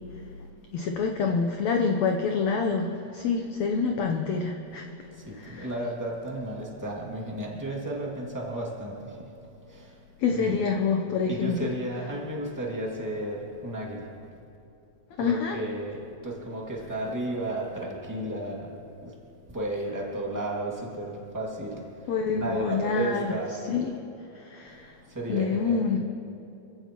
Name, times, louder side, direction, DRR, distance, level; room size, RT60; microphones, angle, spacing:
voice 1, 0.7-4.9 5.3-5.7 10.2-11.7 15.2-15.6 22.1-23.4 23.7-23.9 24.3-24.9 25.3-26.0, left 5 dB, 85° left, 3 dB, 1.5 m, -27 dB
voice 2, 5.0-10.6 11.3-14.4 15.2-23.7 24.8-25.9, right 1 dB, 10° right, -3 dB, 1.1 m, -34 dB
26.5 x 15.5 x 3.0 m, 2.8 s
omnidirectional pair, 4.2 m